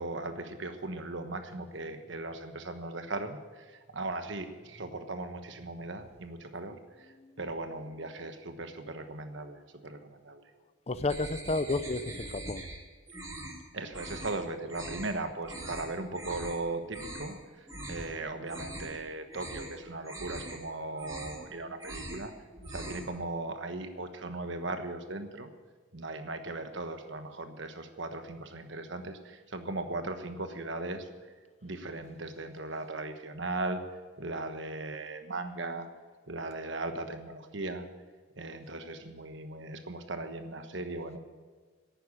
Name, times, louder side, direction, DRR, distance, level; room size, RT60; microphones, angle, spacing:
voice 1, 0.0-7.1 7.4-10.4 13.7-17.4 17.9-22.3 22.7-25.5 25.9-31.1 31.6-33.8 34.2-35.9 36.3-37.9 38.4-41.2, right 2 dB, 65° right, 7 dB, 1.2 m, -38 dB
voice 2, 10.9-12.7, left 2 dB, 30° left, 13 dB, 0.5 m, -31 dB
sound 1, 11.1-12.8 13.1-13.6 13.9-14.3 14.7-15.1 15.4-15.8 16.1-16.6 16.9-17.3 17.7-18.1 18.4-19.0 19.3-19.7 20.0-20.6 20.9-21.4 21.7-22.2 22.5-23.1, right 1 dB, 20° right, 2.6 m, -42 dB
11.5 x 9.2 x 8.6 m, 1.5 s
head